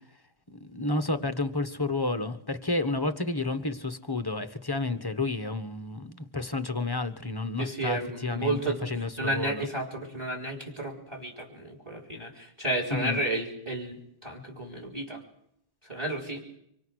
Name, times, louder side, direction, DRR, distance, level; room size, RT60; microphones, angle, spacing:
voice 1, 0.5-9.7 12.9-13.2, left 2 dB, 15° left, 9 dB, 1.0 m, -31 dB
voice 2, 7.6-8.8 9.2-15.2 15.8-16.4, right 2 dB, 15° right, 3 dB, 4.6 m, -32 dB
25.5 x 24.0 x 6.5 m, 0.73 s
omnidirectional pair, 1.9 m